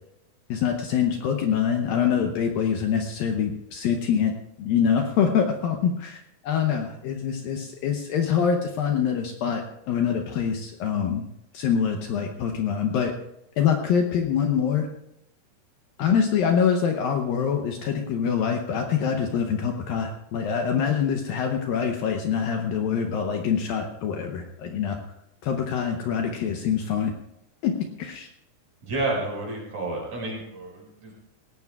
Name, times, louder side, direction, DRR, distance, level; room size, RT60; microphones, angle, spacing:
voice 1, 0.5-11.2 11.5-13.1 13.6-14.9 16.0-25.0 25.4-27.1 27.6-28.3, left 7 dB, 75° left, 3 dB, 2.3 m, -25 dB
voice 2, 28.9-31.1, right 2 dB, 45° right, -2 dB, 6.2 m, -30 dB
20.0 x 17.5 x 2.4 m, 0.83 s
omnidirectional pair, 4.8 m